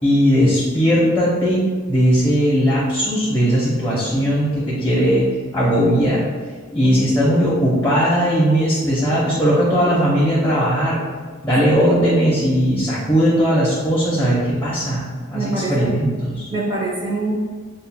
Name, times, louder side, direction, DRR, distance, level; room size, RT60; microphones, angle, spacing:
voice 1, 0.0-6.2 6.7-11.0 11.4-16.5, equal, 10° left, -9 dB, 0.8 m, -18 dB
voice 2, 6.8-7.1 11.7-12.0 15.3-15.9 16.5-17.3, right 2 dB, 20° right, -5 dB, 0.8 m, -25 dB
7.1 x 2.5 x 2.2 m, 1.5 s
head